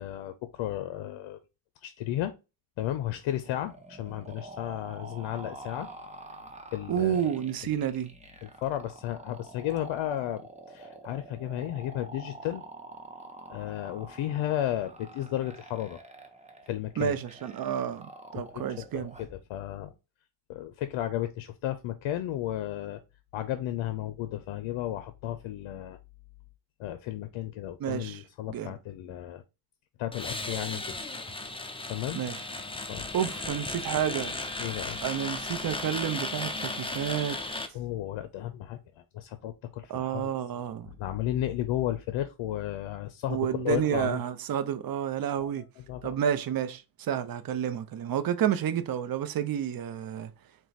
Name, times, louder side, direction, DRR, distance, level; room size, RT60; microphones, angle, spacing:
voice 1, 0.0-1.4 1.8-2.3 2.8-5.9 6.7-7.3 8.4-12.6 13.5-16.0 16.6-17.2 18.5-19.9 20.5-23.0 23.3-26.0 26.8-29.4 30.0-30.9 31.5-31.6 31.9-32.2 32.9-33.1 34.6-35.0 37.7-40.3 41.0-44.2 45.4-46.1, left 12 dB, 85° left, 0.6 m, -33 dB
sound 1, 3.4-19.4, right 2 dB, 15° right, 0.9 m, -47 dB
voice 2, 6.9-8.1 17.0-19.1 27.8-28.2 28.5-28.7 32.2-32.4 33.1-34.4 35.0-37.4 39.9-40.9 43.3-45.6 46.0-50.3, right 9 dB, 50° right, 0.6 m, -30 dB
sound 2, 30.1-37.7, left 2 dB, 10° left, 0.6 m, -35 dB
4.5 x 2.2 x 3.9 m
cardioid pair, 85°, 46 cm